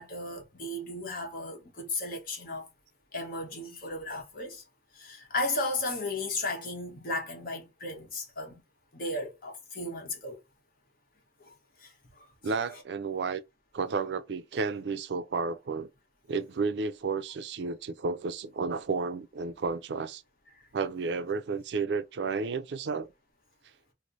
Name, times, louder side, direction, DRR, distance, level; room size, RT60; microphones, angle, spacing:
voice 1, 0.0-2.7 3.1-4.6 4.9-8.6 8.9-10.4 11.4-11.5 11.8-12.3 12.7-12.8 20.5-20.6, left 2 dB, 55° left, 1.1 m, -35 dB
voice 2, 12.4-13.4 13.7-15.9 16.3-20.2 20.7-23.1, right 4 dB, 75° right, 0.4 m, -32 dB
3.1 x 2.1 x 3.9 m
head